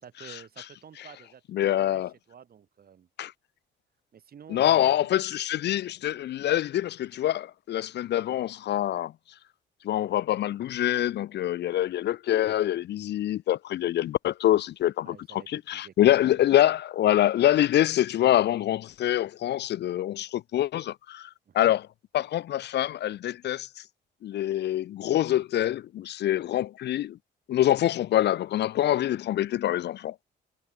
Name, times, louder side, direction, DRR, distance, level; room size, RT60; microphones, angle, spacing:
voice 1, 0.0-1.4 1.8-3.1 4.1-5.2 15.0-16.5 21.5-21.7, right 8 dB, 50° right, 1.8 m, -50 dB
voice 2, 1.5-2.1 3.2-3.3 4.5-9.1 9.8-21.3 21.5-21.9 22.1-23.7 24.2-27.2 27.5-30.2, left 12 dB, 60° left, 0.5 m, -25 dB
cardioid pair, 90°, 20 cm